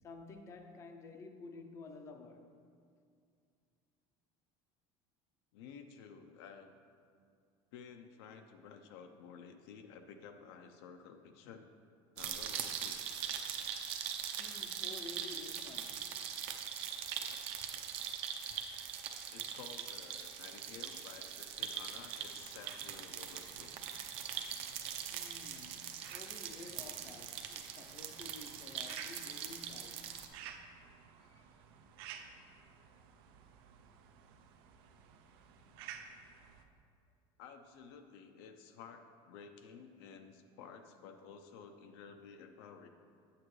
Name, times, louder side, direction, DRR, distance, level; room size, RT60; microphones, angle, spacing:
voice 1, 0.0-2.5 14.4-16.2 25.1-30.1 31.2-31.6 32.1-32.6, left 3 dB, 25° left, 0.5 m, -52 dB
voice 2, 5.5-6.7 7.7-11.7 12.2-13.0 19.3-23.7 37.4-42.9, left 6 dB, 80° left, 0.6 m, -53 dB
sound 1, 12.2-30.3, right 8 dB, 50° right, 0.6 m, -42 dB
sound 2, 22.1-36.6, right 7 dB, 90° right, 0.6 m, -55 dB
8.5 x 8.4 x 3.2 m
cardioid pair, 175°, 13 cm